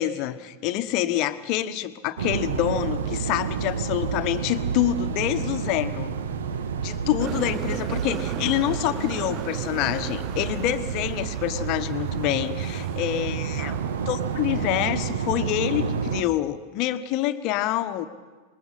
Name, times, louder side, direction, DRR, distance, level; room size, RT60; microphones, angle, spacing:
voice 1, 0.0-6.1 6.8-13.8 14.1-18.1, left 13 dB, 40° left, 11 dB, 1.1 m, -26 dB
sound 1, 2.2-16.2, right 7 dB, 60° right, 1.2 m, -30 dB
sound 2, 7.2-14.8, right 10 dB, 35° right, 0.7 m, -38 dB
26.5 x 21.0 x 5.5 m, 1.4 s
figure-of-eight pair, 90°, 0 cm